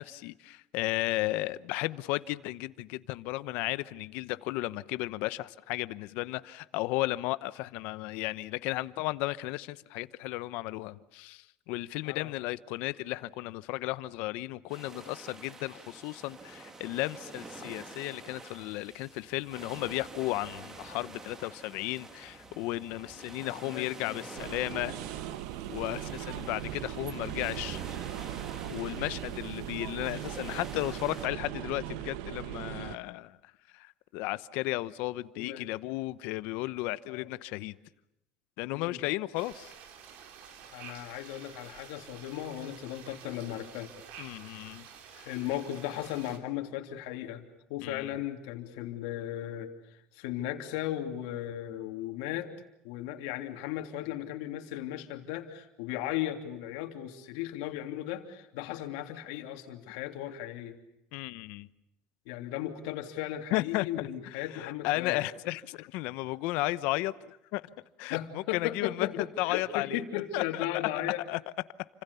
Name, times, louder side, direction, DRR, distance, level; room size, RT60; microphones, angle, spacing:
voice 1, 0.0-24.9 25.7-27.8 28.7-33.4 33.7-37.8 38.6-39.7 44.2-44.9 45.1-45.3 47.8-48.1 61.1-61.7 63.5-63.9 64.5-67.6 68.0-70.0 70.3-70.6 71.3-71.4, left 19 dB, 65° left, 16 dB, 0.9 m, -34 dB
sound 1, 14.7-31.3, right 3 dB, 15° right, 2.1 m, -48 dB
voice 2, 23.4-24.6 35.3-35.7 37.1-37.3 38.7-39.0 40.7-43.9 45.2-47.4 47.7-52.5 52.8-60.8 62.2-65.2 68.1-71.2, left 12 dB, 80° left, 5 dB, 3.1 m, -36 dB
sound 2, 24.3-33.0, right 13 dB, 75° right, 1.2 m, -39 dB
sound 3, 39.3-46.4, right 7 dB, 55° right, 3.3 m, -50 dB
29.5 x 26.0 x 7.0 m, 0.84 s
cardioid pair, 170°, 3 cm